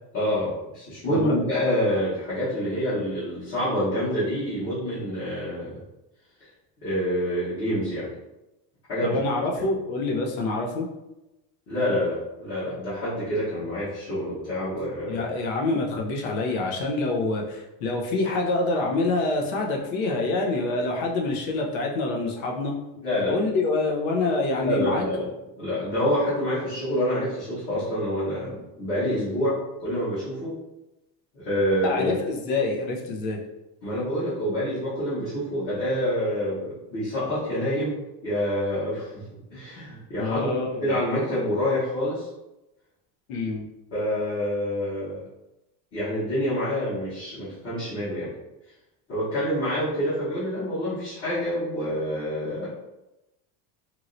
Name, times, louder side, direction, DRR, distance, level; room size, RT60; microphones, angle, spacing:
voice 1, 0.1-5.8 6.4-6.5 6.8-8.1 8.9-9.2 9.5-9.6 11.7-15.2 23.0-23.3 24.6-25.3 25.6-30.5 31.3-32.1 33.8-39.2 39.5-42.3 43.9-45.2 45.9-48.3 49.1-52.7, equal, 30° left, -12 dB, 1.2 m, -27 dB
voice 2, 9.0-10.9 15.1-22.7 23.3-25.0 31.8-33.4 40.2-41.0 43.3-43.6, left 3 dB, 65° left, 0 dB, 0.8 m, -26 dB
3.0 x 2.8 x 2.5 m, 0.97 s
cardioid pair, 170°, 45 cm